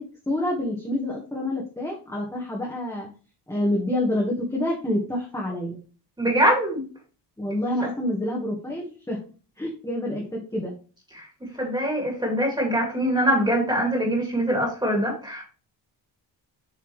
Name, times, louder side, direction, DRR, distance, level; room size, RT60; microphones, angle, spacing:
voice 1, 0.3-3.1 3.5-5.8 7.4-9.2 9.6-10.2 10.5-10.7, left 1 dB, 5° left, -3 dB, 1.5 m, -27 dB
voice 2, 6.2-6.8 11.1-11.3 11.6-15.4, right 1 dB, 10° right, -1 dB, 2.4 m, -23 dB
7.4 x 5.8 x 3.1 m, 0.37 s
cardioid pair, 165°, 43 cm